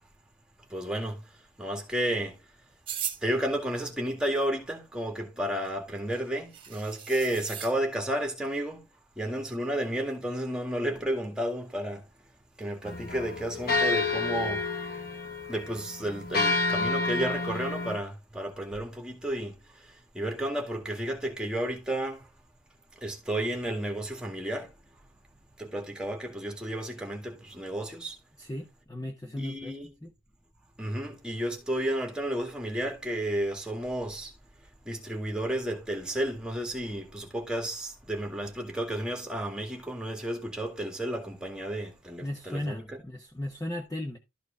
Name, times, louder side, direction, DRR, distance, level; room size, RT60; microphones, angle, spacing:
voice 1, 0.7-1.3 1.6-2.4 3.2-8.8 9.2-12.1 12.6-14.7 15.5-22.3 23.0-24.7 25.6-28.2 29.4-29.9 30.8-34.3 34.8-43.0, right 1 dB, 5° right, 1.9 m, -32 dB
sound 1, 2.9-3.2 5.7-5.8 6.1-6.2 6.5-7.7, right 9 dB, 25° right, 1.6 m, -37 dB
sound 2, 12.8-18.0, left 3 dB, 45° left, 1.2 m, -29 dB
voice 2, 28.4-30.1 42.2-44.2, left 1 dB, 15° left, 0.9 m, -36 dB
12.5 x 4.7 x 3.5 m
head